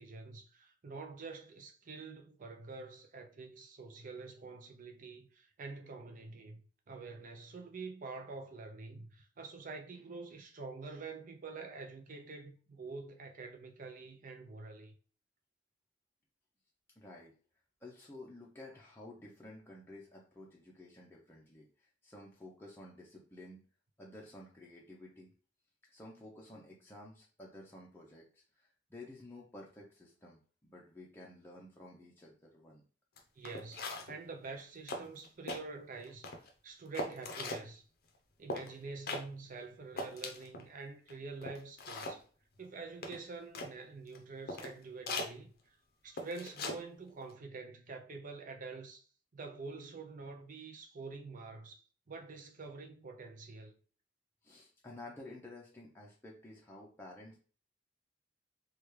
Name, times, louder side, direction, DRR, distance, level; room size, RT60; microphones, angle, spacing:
voice 1, 0.0-14.9 33.4-36.3 36.6-37.8 38.4-42.2 42.6-45.5 46.0-49.1 49.3-53.8, right 4 dB, 45° right, 0.5 m, -47 dB
voice 2, 17.0-17.3 17.8-23.6 24.0-25.3 25.9-32.8 45.9-46.0 54.4-57.4, left 1 dB, 10° left, 0.6 m, -52 dB
sound 1, 33.2-33.3 33.4-34.2 34.6-34.7 34.9-35.6 36.0-36.5 36.9-37.6 38.5-38.7 39.1-39.2 39.6-39.7 40.0-40.6 41.1-41.2 41.4-42.2 43.0-43.7 44.1-44.2 44.5-44.7 45.1-45.3 46.2-46.8 47.1-47.3, left 2 dB, 55° left, 0.6 m, -40 dB
3.4 x 2.4 x 3.1 m
head